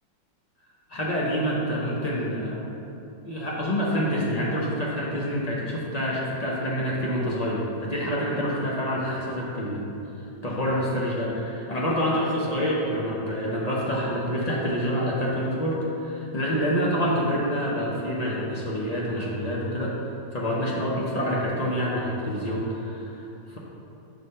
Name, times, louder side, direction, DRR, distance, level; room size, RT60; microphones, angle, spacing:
voice 1, 0.9-2.6 3.2-9.9 10.4-23.6, equal, 50° left, -5 dB, 0.4 m, -27 dB
6.4 x 3.3 x 5.5 m, 2.8 s
omnidirectional pair, 1.9 m